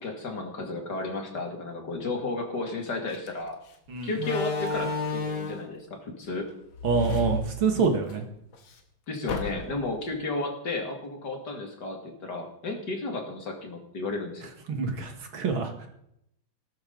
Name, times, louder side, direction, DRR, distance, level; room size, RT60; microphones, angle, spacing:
voice 1, 0.0-3.6 4.0-6.5 9.1-14.5, left 2 dB, 50° left, 3 dB, 2.7 m, -33 dB
Slam, 3.1-3.3 4.1-5.7 6.7-8.2 8.5-8.6 9.3-9.9, left 4 dB, 70° left, 2.3 m, -31 dB
voice 2, 6.8-8.2 14.7-15.9, right 5 dB, 65° right, 4 dB, 2.6 m, -26 dB
18.5 x 12.5 x 3.9 m, 0.76 s
omnidirectional pair, 2.3 m